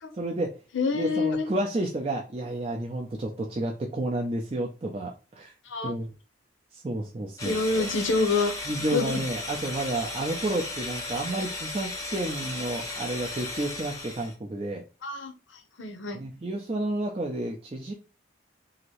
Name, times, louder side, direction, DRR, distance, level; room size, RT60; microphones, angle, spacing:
voice 1, 0.2-0.6 0.9-5.5 5.8-6.1 6.7-7.9 8.7-14.8 16.1-17.9, right 1 dB, 30° right, -1 dB, 0.4 m, -31 dB
voice 2, 0.7-1.5 5.7-5.9 7.4-8.5 8.9-9.2 15.0-15.3 15.8-16.2, left 3 dB, 75° left, 6 dB, 0.7 m, -26 dB
sound 1, 7.4-14.3, left 2 dB, 15° left, 0.6 m, -35 dB
2.8 x 2.5 x 3.0 m, 0.32 s
head